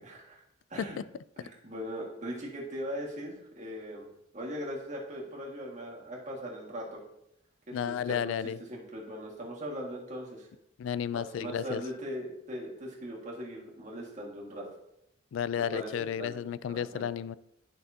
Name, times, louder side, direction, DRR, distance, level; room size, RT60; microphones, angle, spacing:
voice 1, 0.0-0.4 0.7-1.0 1.4-7.0 7.7-8.3 8.7-10.5 11.1-14.7 15.7-16.4 16.7-17.1, equal, 40° right, -2 dB, 1.8 m, -40 dB
voice 2, 7.7-8.6 10.8-11.8 15.3-17.4, left 8 dB, 90° left, 18 dB, 0.3 m, -32 dB
10.5 x 5.8 x 2.7 m, 0.81 s
head